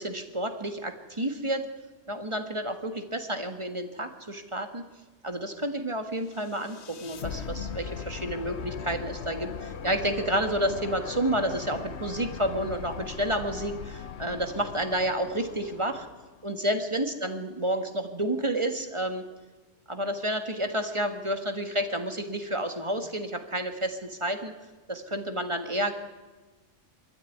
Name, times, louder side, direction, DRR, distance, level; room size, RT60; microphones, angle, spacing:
voice 1, 0.0-1.6 2.1-4.8 5.2-16.1 16.4-19.2 19.9-24.5 24.9-25.9, right 1 dB, 25° right, 6 dB, 1.8 m, -30 dB
sound 1, 6.3-16.5, left 6 dB, 60° left, 1.2 m, -39 dB
23.5 x 14.0 x 9.5 m, 1.3 s
omnidirectional pair, 1.3 m